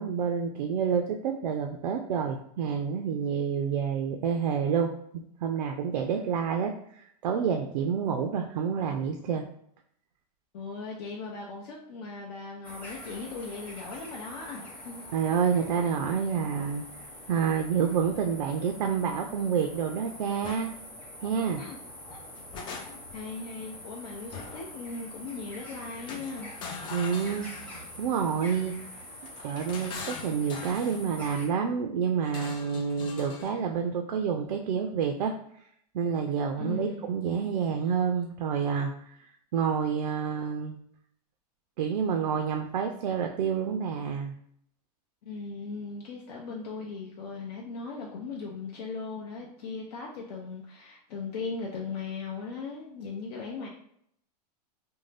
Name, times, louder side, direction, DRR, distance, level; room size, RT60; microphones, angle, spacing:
voice 1, 0.0-4.9 5.4-6.7 7.2-9.4 15.1-16.8 17.3-20.7 21.2-21.6 26.9-28.7 29.4-35.3 35.9-38.9 39.5-40.8 41.8-44.3, right 7 dB, 85° right, 3 dB, 0.4 m, -28 dB
voice 2, 10.5-15.1 21.6-21.8 22.1-22.2 22.9-26.5 36.6-37.1 45.2-53.7, left 4 dB, 70° left, -2 dB, 0.6 m, -38 dB
sound 1, 12.6-31.5, left 1 dB, 5° left, 0.7 m, -45 dB
sound 2, 20.4-20.7 22.1-23.2 24.3-24.7 26.1-27.9 29.2-31.0 32.2-33.6, left 5 dB, 25° left, 0.3 m, -42 dB
2.6 x 2.1 x 3.2 m, 0.69 s
supercardioid pair, 140°, 21 cm